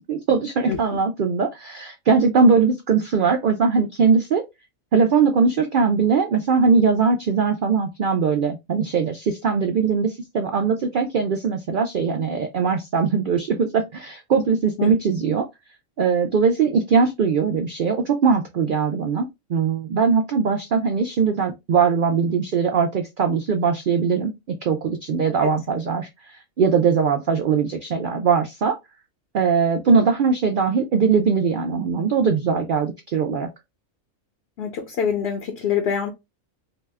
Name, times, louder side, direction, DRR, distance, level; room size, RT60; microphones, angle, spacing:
voice 1, 0.1-4.4 4.9-15.5 16.0-19.2 19.5-24.3 24.6-28.8 29.3-33.5, right 5 dB, 80° right, 0.4 m, -20 dB
voice 2, 0.7-1.0 14.8-14.9 25.4-25.5 34.6-36.1, left 8 dB, 60° left, 0.8 m, -25 dB
2.8 x 2.2 x 3.3 m
omnidirectional pair, 1.4 m